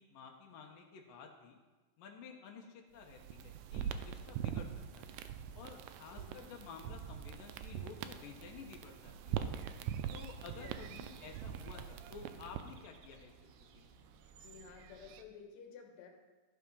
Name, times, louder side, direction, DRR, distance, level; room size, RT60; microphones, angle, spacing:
voice 1, 0.0-1.6 2.0-4.7 4.9-5.2 5.5-9.5 10.1-13.3 13.7-13.9, left 6 dB, 85° left, 1 dB, 2.8 m, -52 dB
sound 1, 3.0-12.8, right 9 dB, 90° right, 2.3 m, -43 dB
voice 2, 6.1-6.6 10.6-10.9 14.4-16.1, left 6 dB, 65° left, 2 dB, 2.6 m, -54 dB
sound 2, 9.0-15.2, right 7 dB, 75° right, 1.8 m, -58 dB
12.5 x 7.1 x 5.6 m, 1.3 s
omnidirectional pair, 3.8 m